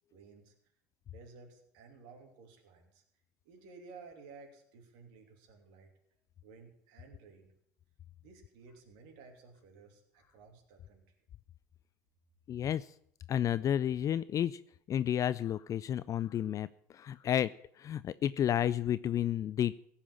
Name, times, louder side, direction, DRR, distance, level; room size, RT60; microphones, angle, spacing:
voice 1, 0.1-0.5 1.1-3.0 3.4-5.9 6.4-7.5 8.2-11.0, right 4 dB, 65° right, 3 dB, 2.8 m, -55 dB
voice 2, 12.5-12.9 13.3-14.6 14.9-16.7 16.9-17.5 17.8-19.7, left 10 dB, 40° left, 16 dB, 0.4 m, -31 dB
16.5 x 5.8 x 8.6 m, 0.69 s
hypercardioid pair, 75°, 9 cm